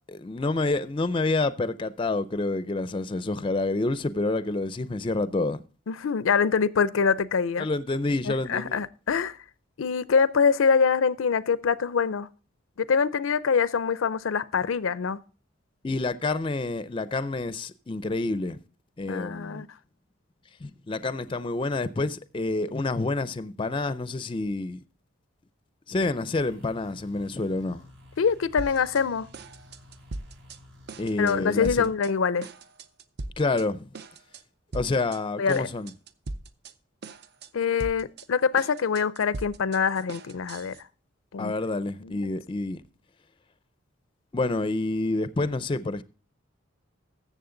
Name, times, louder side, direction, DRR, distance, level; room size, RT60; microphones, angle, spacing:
voice 1, 0.1-5.6 7.6-8.8 15.8-18.6 19.0-19.6 20.6-24.8 25.9-27.8 31.0-31.9 33.4-33.9 34.7-35.9 41.4-42.8 44.3-46.0, left 2 dB, 25° left, 0.4 m, -28 dB
voice 2, 5.9-7.7 8.3-9.4 9.8-12.3 12.8-15.2 19.1-19.7 28.2-29.3 31.2-32.5 35.4-35.7 37.5-40.8 41.3-41.5 42.0-42.3, left 6 dB, 85° left, 0.5 m, -24 dB
sound 1, 26.4-32.0, left 1 dB, 70° right, 3.7 m, -52 dB
sound 2, 28.6-29.1 29.3-30.6 30.9-31.4 31.6-32.1 32.4-33.7 33.9-34.4 34.7-35.2 35.5-36.7 37.0-37.5 37.8-40.8, right 2 dB, 55° right, 0.6 m, -39 dB
14.0 x 7.3 x 3.8 m
head